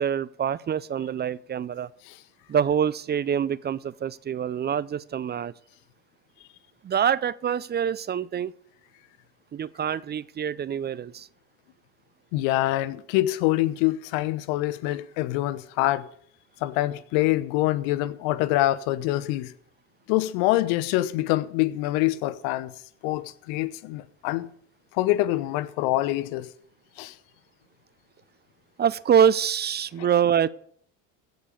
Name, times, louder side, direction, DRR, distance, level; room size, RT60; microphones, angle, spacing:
voice 1, 0.0-1.9 2.5-5.5 6.8-8.5 9.5-11.3 28.8-30.5, right 8 dB, 30° right, 0.5 m, -25 dB
voice 2, 12.3-16.1 16.6-19.5 20.1-22.7 23.0-24.5 24.9-26.5 27.0-27.1, left 16 dB, 80° left, 0.9 m, -25 dB
16.0 x 5.3 x 8.4 m
supercardioid pair, 95°, 34 cm